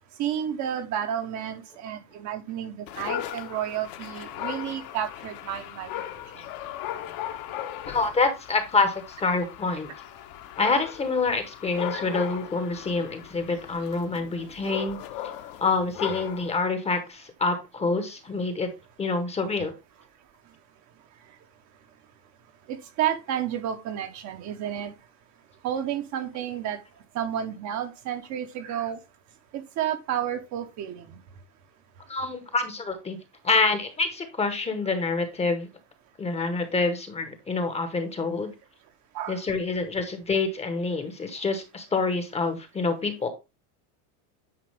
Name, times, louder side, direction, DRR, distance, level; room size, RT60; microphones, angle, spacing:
voice 1, 0.2-5.9 11.9-12.0 22.7-24.9 25.6-26.8 27.1-29.0 29.5-31.1 39.1-39.4, right 10 dB, 35° right, 7 dB, 0.9 m, -31 dB
Dog, 2.9-16.6, left 12 dB, 45° left, 1.1 m, -37 dB
voice 2, 7.9-9.9 10.6-15.0 15.6-18.7 19.0-19.7 32.1-33.2 33.4-35.7 36.2-38.5 39.3-43.3, left 3 dB, 15° left, 8 dB, 0.9 m, -27 dB
9.7 x 4.8 x 3.3 m, 0.26 s
supercardioid pair, 155°, 47 cm